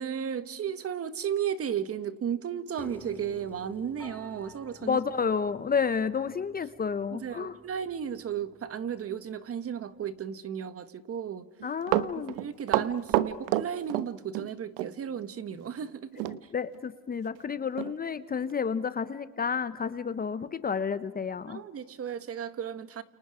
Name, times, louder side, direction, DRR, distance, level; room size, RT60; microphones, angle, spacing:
voice 1, 0.0-5.0 7.1-11.5 12.2-16.2 21.5-23.0, right 8 dB, 35° right, 12 dB, 1.6 m, -34 dB
Piano, 2.8-9.0, left 2 dB, 5° left, 2.4 m, -51 dB
voice 2, 4.8-7.6 11.6-12.4 16.3-21.6, left 6 dB, 25° left, 14 dB, 0.8 m, -31 dB
Run, 11.6-14.5 14.8-14.9 16.2-16.4 16.7-16.8 17.4-17.5 17.8-18.0 18.5-18.6, right 15 dB, 80° right, 1.2 m, -28 dB
30.0 x 29.0 x 5.0 m, 1.2 s
supercardioid pair, 110°, 39 cm